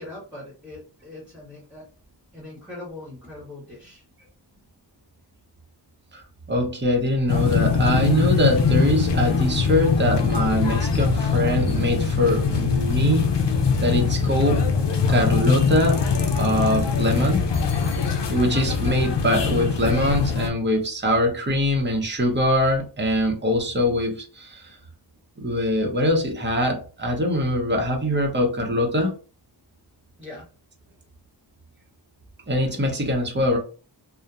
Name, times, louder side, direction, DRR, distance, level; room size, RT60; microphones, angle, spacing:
voice 1, 0.0-1.8 2.3-4.0 30.2-30.4, left 2 dB, 5° right, -5 dB, 1.1 m, -40 dB
voice 2, 6.5-13.3 13.8-14.6 15.1-16.0 16.4-17.4 18.3-24.8 25.4-29.2 32.5-33.6, equal, 25° right, 1 dB, 0.7 m, -23 dB
sound 1, 7.3-20.5, left 5 dB, 75° left, 0.5 m, -22 dB
2.7 x 2.1 x 2.3 m, 0.36 s
wide cardioid pair, 45°, 43 cm